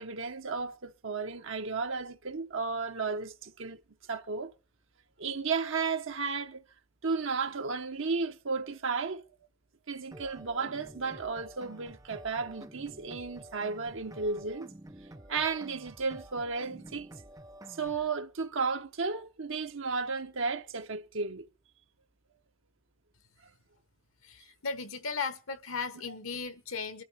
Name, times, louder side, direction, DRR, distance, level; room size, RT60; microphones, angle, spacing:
voice 1, 0.0-3.8 4.1-4.5 5.2-6.6 7.0-9.2 9.9-14.7 15.3-17.1 17.7-21.5, right 4 dB, 70° right, 1.0 m, -33 dB
sound 1, 10.1-18.1, right 1 dB, 15° right, 0.7 m, -50 dB
voice 2, 24.2-27.0, left 5 dB, 85° left, 1.4 m, -36 dB
22.5 x 11.5 x 5.0 m
head